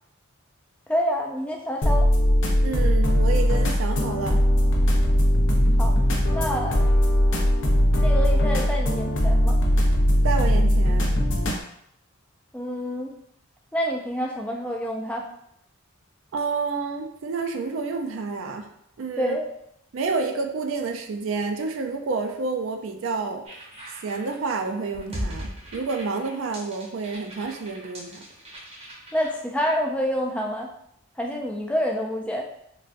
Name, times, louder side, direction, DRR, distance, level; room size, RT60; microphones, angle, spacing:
voice 1, 0.9-2.1 5.8-5.9 6.3-6.8 8.0-9.6 12.5-13.1 13.7-15.3 19.2-19.5 29.1-30.7 31.2-32.5, equal, 5° left, 0 dB, 0.3 m, -27 dB
sound 1, 1.8-11.6, equal, 60° left, 0.6 m, -20 dB
voice 2, 2.6-4.4 10.2-11.1 16.3-18.7 19.0-19.4 19.9-23.4 24.0-28.2, right 4 dB, 70° right, 5 dB, 0.4 m, -29 dB
sound 2, 23.4-29.3, equal, 30° right, 0.7 m, -38 dB
4.0 x 2.2 x 2.5 m, 0.73 s
head